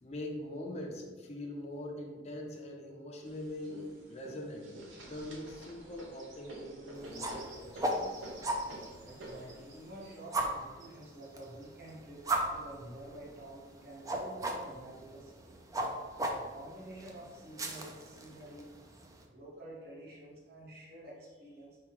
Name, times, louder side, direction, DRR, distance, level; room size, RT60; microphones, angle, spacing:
voice 1, 0.0-4.8 5.1-8.3 16.2-16.3, left 1 dB, 35° left, 1 dB, 0.5 m, -43 dB
sound 1, 3.2-13.5 14.2-15.1 15.5-15.6 15.9-16.6 17.3-17.4 18.1-18.5, right 1 dB, 85° right, 0.8 m, -50 dB
Woosh Fleuret Escrime A, 6.9-19.2, right 1 dB, 20° right, 0.3 m, -38 dB
voice 2, 9.0-15.6 16.3-18.7 19.2-21.8, right 1 dB, 55° right, -5 dB, 1.1 m, -49 dB
4.7 x 3.6 x 2.9 m, 1.4 s
head